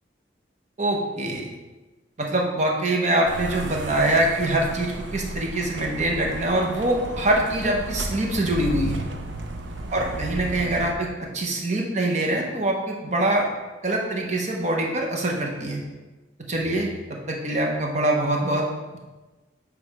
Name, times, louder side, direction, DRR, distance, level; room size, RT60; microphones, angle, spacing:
voice 1, 0.8-1.5 2.2-9.0 9.9-11.1 11.3-13.5 13.8-15.8 16.5-16.9 17.3-18.6, right 1 dB, 40° right, 0 dB, 0.9 m, -24 dB
sound 1, 3.3-10.9, right 2 dB, 75° right, 0.6 m, -33 dB
7.0 x 3.4 x 4.7 m, 1.2 s
head